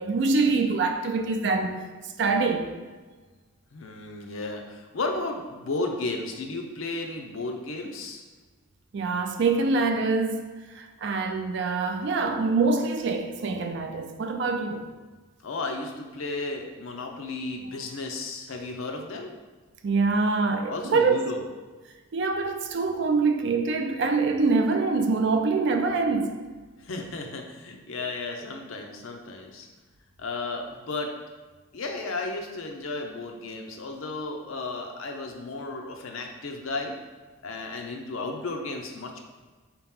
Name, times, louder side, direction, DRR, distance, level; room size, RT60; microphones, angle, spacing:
voice 1, 0.0-1.8 2.2-2.7 8.9-10.4 10.7-14.9 19.8-21.3 22.1-26.4, right 4 dB, 55° right, 0.3 m, -25 dB
voice 2, 3.7-8.2 15.4-19.3 20.7-21.4 26.8-29.7 30.2-31.1 31.7-37.0 37.4-39.2, left 3 dB, 75° left, 0.6 m, -34 dB
4.6 x 2.9 x 3.6 m
head